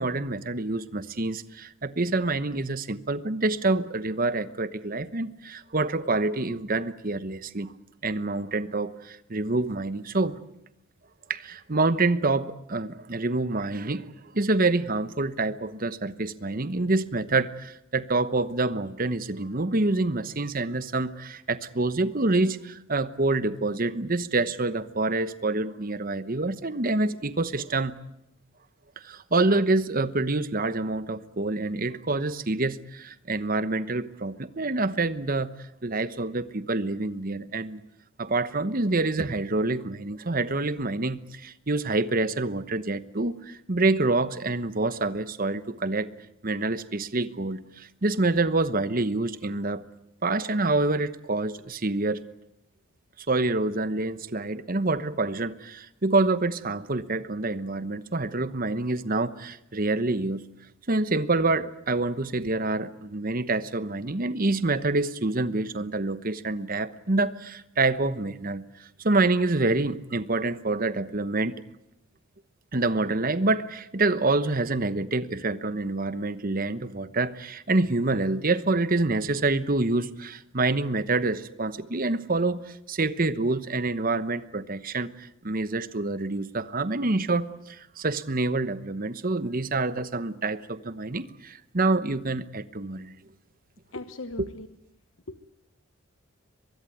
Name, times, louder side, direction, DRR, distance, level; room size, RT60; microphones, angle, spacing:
voice 1, 0.0-7.7 8.0-10.4 11.3-27.9 29.0-35.5 35.8-37.8 38.2-46.1 46.4-49.8 50.2-52.2 53.3-60.4 60.9-71.5 72.7-93.1 94.4-94.5, right 2 dB, 40° right, 14 dB, 1.0 m, -27 dB
voice 2, 93.9-94.7 95.3-95.4, left 2 dB, 60° left, 9 dB, 1.2 m, -38 dB
23.0 x 23.0 x 9.3 m, 0.83 s
head